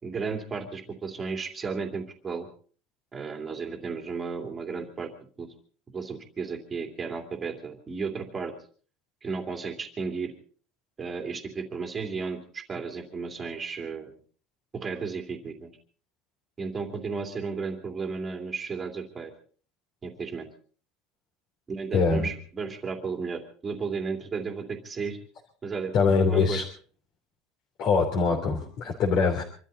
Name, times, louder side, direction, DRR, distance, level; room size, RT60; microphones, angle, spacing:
voice 1, 0.0-2.5 3.1-5.1 5.4-5.5 5.9-8.5 9.2-10.3 11.0-14.2 14.7-15.7 16.6-19.3 20.0-20.5 21.7-25.2 25.6-25.9 26.3-26.6, right 5 dB, 15° right, 4 dB, 2.7 m, -34 dB
voice 2, 21.9-22.3 25.9-26.6 27.8-29.4, left 5 dB, 40° left, 0 dB, 3.2 m, -23 dB
26.5 x 13.0 x 4.1 m, 0.43 s
cardioid pair, 175°, 0 cm